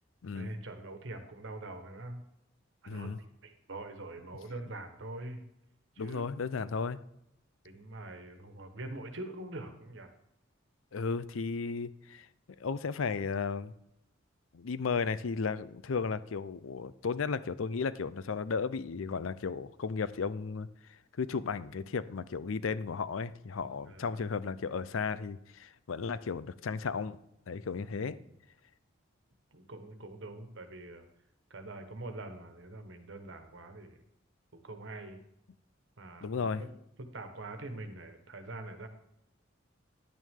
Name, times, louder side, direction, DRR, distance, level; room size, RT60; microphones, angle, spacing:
voice 1, 0.3-2.2 2.8-5.4 5.9-6.2 7.6-10.1 15.9-16.0 23.9-24.2 27.8-28.3 29.5-31.0 31.5-34.0 34.5-35.2 36.0-36.7 37.0-38.9, right 2 dB, 65° right, 6 dB, 1.3 m, -44 dB
voice 2, 2.9-3.2 6.0-7.0 10.9-12.3 12.6-13.7 14.5-20.7 21.2-27.2 27.5-28.2 36.2-36.6, left 5 dB, 85° left, 16 dB, 0.5 m, -34 dB
10.5 x 9.2 x 3.7 m, 0.81 s
head